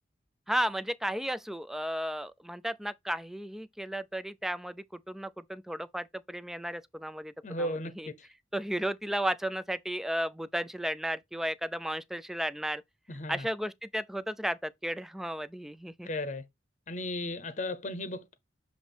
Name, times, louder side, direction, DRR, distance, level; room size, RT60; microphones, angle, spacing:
voice 1, 0.5-8.1 8.5-12.8 13.3-16.1, equal, ahead, 0.3 m, -34 dB
voice 2, 7.4-7.9 13.1-13.5 16.0-16.4 16.9-18.3, left 1 dB, 40° left, 0.8 m, -35 dB
7.3 x 3.0 x 4.3 m
head